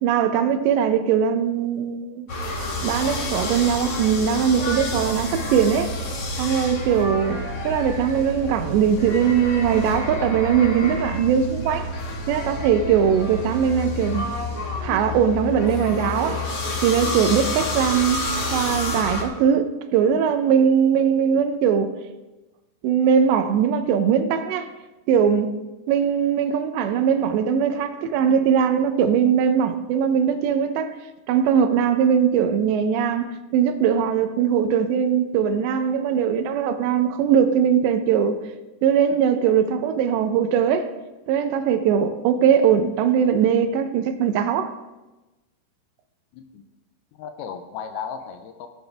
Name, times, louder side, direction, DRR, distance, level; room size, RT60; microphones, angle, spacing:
voice 1, 0.0-2.3 2.8-5.9 6.4-11.9 12.3-14.3 14.8-16.4 16.8-21.9 22.8-24.7 25.1-25.6 25.9-30.9 31.3-33.3 33.5-38.4 38.8-40.9 41.3-44.7, right 8 dB, 85° right, 3.0 m, -20 dB
sound 1, 2.3-19.2, left 1 dB, 55° left, 1.7 m, -29 dB
voice 2, 47.2-48.7, left 7 dB, 80° left, 2.4 m, -35 dB
17.5 x 8.0 x 3.4 m
omnidirectional pair, 4.9 m